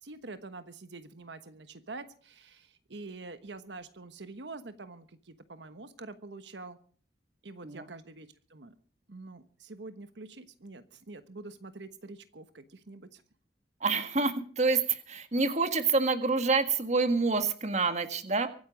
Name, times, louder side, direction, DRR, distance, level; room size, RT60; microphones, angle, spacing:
voice 1, 0.0-6.8 7.4-8.7 9.1-13.2, right 3 dB, 80° right, 10 dB, 1.2 m, -46 dB
voice 2, 13.8-18.5, right 4 dB, 40° right, 9 dB, 1.7 m, -27 dB
24.0 x 9.5 x 5.2 m, 0.44 s
head